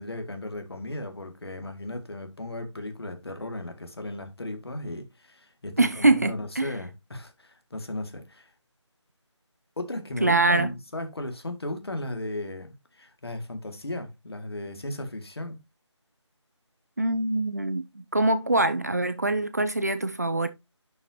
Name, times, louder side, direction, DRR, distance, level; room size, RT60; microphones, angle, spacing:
voice 1, 0.0-8.5 9.8-15.6, left 1 dB, 55° left, 2.3 m, -36 dB
voice 2, 5.8-6.7 10.2-10.7 17.0-20.5, right 2 dB, 35° right, 0.5 m, -24 dB
11.0 x 4.9 x 2.9 m
figure-of-eight pair, 165°, 16 cm